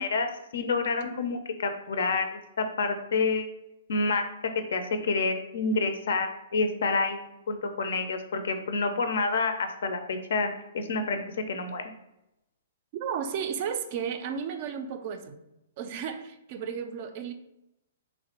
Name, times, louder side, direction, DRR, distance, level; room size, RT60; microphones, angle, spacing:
voice 1, 0.0-3.5 3.9-4.2 4.7-10.5 10.7-11.2 11.5-11.8, left 3 dB, 70° left, 7 dB, 0.4 m, -28 dB
voice 2, 13.0-15.4 15.8-17.3, right 7 dB, 45° right, 7 dB, 0.3 m, -33 dB
2.9 x 2.0 x 2.8 m, 0.88 s
hypercardioid pair, 130°, 0 cm